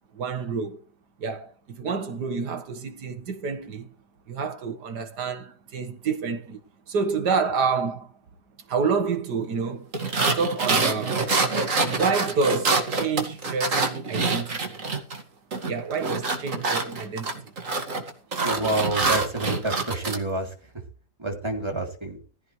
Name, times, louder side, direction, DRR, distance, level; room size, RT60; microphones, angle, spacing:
voice 1, 0.1-0.8 1.2-3.9 4.3-6.6 6.9-8.1 8.7-9.9 10.2-11.2 11.9-14.6 15.7-17.5, right 5 dB, 70° right, 2.2 m, -28 dB
sound 1, 9.9-15.2 15.5-20.2, right 3 dB, 50° right, 2.6 m, -26 dB
voice 2, 18.4-20.5 21.2-22.2, right 2 dB, 15° right, 3.4 m, -28 dB
15.5 x 15.5 x 3.4 m
omnidirectional pair, 1.8 m